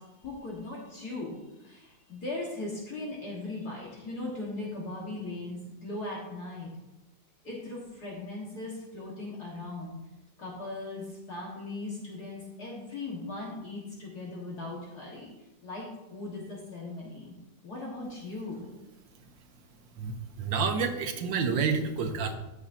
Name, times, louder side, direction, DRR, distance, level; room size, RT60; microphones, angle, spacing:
voice 1, 0.0-6.7 7.4-10.0 10.4-15.3 15.6-17.3 17.6-18.7, left 2 dB, 55° left, -4 dB, 2.1 m, -39 dB
voice 2, 20.4-22.4, right 5 dB, 80° right, 7 dB, 1.6 m, -28 dB
14.5 x 6.2 x 2.7 m, 0.99 s
omnidirectional pair, 2.1 m